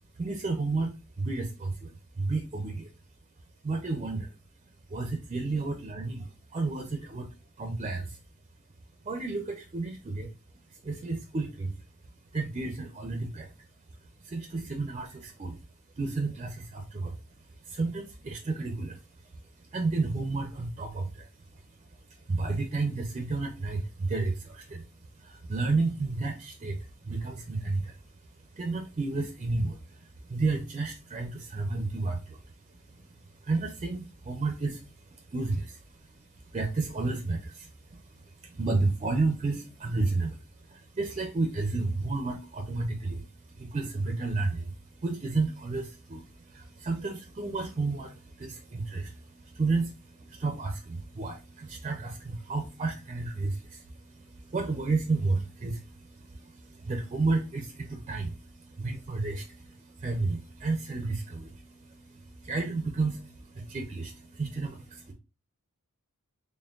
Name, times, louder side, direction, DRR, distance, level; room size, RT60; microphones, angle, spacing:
voice 1, 0.2-2.9 3.6-4.3 4.9-7.3 7.6-8.2 9.0-10.3 10.7-11.7 12.3-13.5 14.2-15.6 16.0-17.2 17.7-19.0 19.6-21.6 22.3-24.8 25.2-28.0 28.5-32.4 32.7-33.1 33.4-65.1, right 3 dB, 30° right, 0.4 m, -32 dB
4.3 x 3.3 x 2.3 m
head